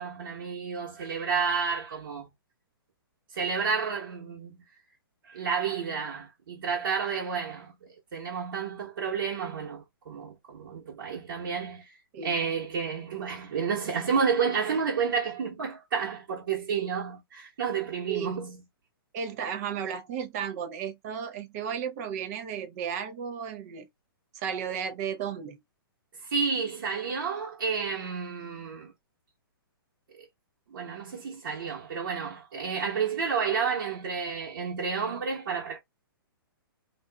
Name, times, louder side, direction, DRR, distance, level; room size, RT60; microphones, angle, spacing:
voice 1, 0.0-2.3 3.3-4.6 5.3-11.9 12.2-18.6 26.3-28.9 30.1-30.2 30.7-35.8, right 6 dB, 65° right, 1.2 m, -30 dB
voice 2, 18.1-18.4 19.1-23.9 24.3-25.6, right 7 dB, 40° right, 0.7 m, -34 dB
2.5 x 2.5 x 2.2 m
hypercardioid pair, 130°, 12 cm